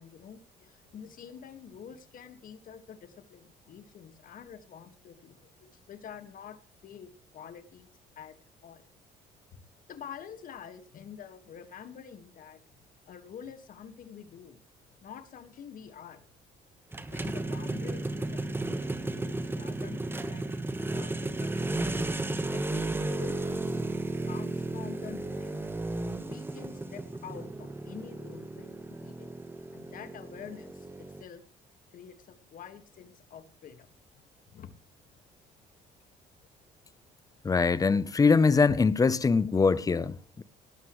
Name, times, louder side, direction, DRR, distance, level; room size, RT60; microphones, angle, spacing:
voice 1, 0.0-7.1 7.3-7.9 8.2-8.4 8.6-8.9 9.5-9.6 9.9-12.6 13.1-14.6 15.0-16.2 17.1-20.5 20.9-21.9 22.5-23.8 24.2-25.6 26.2-29.3 29.7-31.4 31.9-33.9 34.2-34.7, left 8 dB, 55° left, 1.9 m, -47 dB
sound 1, 16.9-31.2, right 2 dB, 15° right, 1.2 m, -34 dB
voice 2, 37.4-40.4, left 4 dB, 20° left, 0.7 m, -23 dB
19.0 x 12.5 x 3.2 m
cardioid pair, 110°, 17 cm